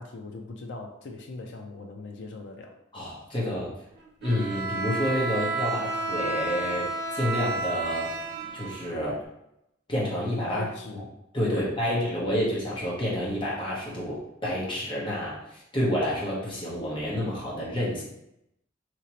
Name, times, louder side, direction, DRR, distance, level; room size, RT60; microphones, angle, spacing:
voice 1, 0.0-2.8 10.5-11.1 11.5-12.1, left 3 dB, 65° left, 2 dB, 0.4 m, -39 dB
voice 2, 2.9-3.7 4.2-8.1 8.5-9.2 9.9-10.7 10.9-11.0 11.3-18.0, equal, 25° left, -5 dB, 0.9 m, -29 dB
Bowed string instrument, 4.2-9.2, right 2 dB, 55° right, 0.6 m, -31 dB
3.0 x 2.8 x 2.8 m, 0.83 s
head